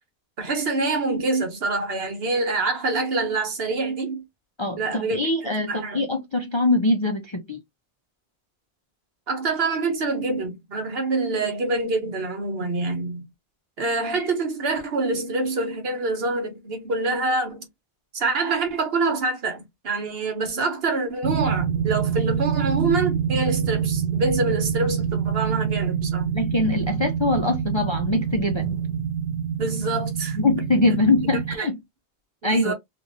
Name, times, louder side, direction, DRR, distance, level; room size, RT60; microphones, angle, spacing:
voice 1, 0.4-4.2 4.8-5.2 5.7-6.0 9.3-13.3 13.8-17.7 18.1-26.3 29.6-30.4 31.6-31.7 32.4-32.7, right 3 dB, 65° right, 1.2 m, -26 dB
voice 2, 4.6-7.6 26.3-28.8 30.3-31.8 32.4-32.7, left 2 dB, 40° left, 0.4 m, -23 dB
sound 1, 21.2-31.5, right 7 dB, 90° right, 1.0 m, -26 dB
3.1 x 2.5 x 2.5 m
omnidirectional pair, 1.1 m